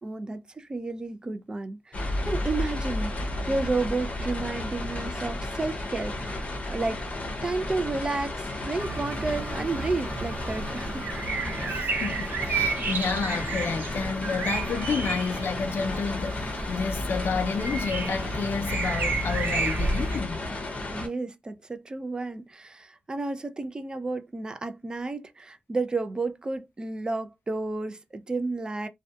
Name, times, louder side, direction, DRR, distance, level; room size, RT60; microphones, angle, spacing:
voice 1, 0.0-7.0 7.4-11.1 11.7-11.9 20.9-28.9, right 3 dB, 20° right, 0.3 m, -32 dB
sound 1, 1.9-21.1, left 1 dB, 35° left, 0.6 m, -33 dB
sound 2, 8.8-20.2, right 3 dB, 65° right, 0.6 m, -31 dB
voice 2, 11.6-20.4, left 5 dB, 75° left, 0.4 m, -30 dB
2.6 x 2.1 x 2.2 m
wide cardioid pair, 150°, 4 cm